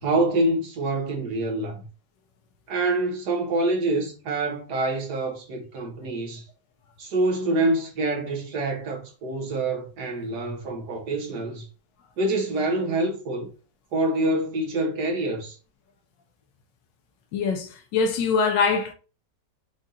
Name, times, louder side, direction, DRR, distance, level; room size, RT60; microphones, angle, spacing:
voice 1, 0.0-1.8 2.7-6.4 7.0-11.6 12.2-13.5 13.9-15.6, right 2 dB, 70° right, 1.4 m, -26 dB
voice 2, 17.3-18.9, left 5 dB, 80° left, 1.4 m, -23 dB
5.0 x 2.5 x 4.1 m
omnidirectional pair, 1.9 m